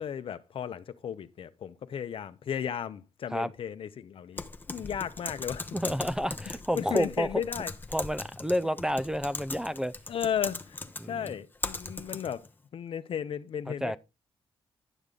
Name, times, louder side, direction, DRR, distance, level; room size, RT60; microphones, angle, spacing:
voice 1, 0.0-5.7 6.7-7.7 10.1-10.8 11.1-12.4 12.7-14.0, left 8 dB, 65° left, 0.7 m, -34 dB
Typing, 4.4-12.5, left 3 dB, 20° left, 0.8 m, -39 dB
voice 2, 5.7-7.3 7.9-9.9 11.0-11.3 13.8-14.0, equal, 5° right, 0.4 m, -30 dB
11.0 x 6.7 x 3.8 m
cardioid pair, 95°, 10 cm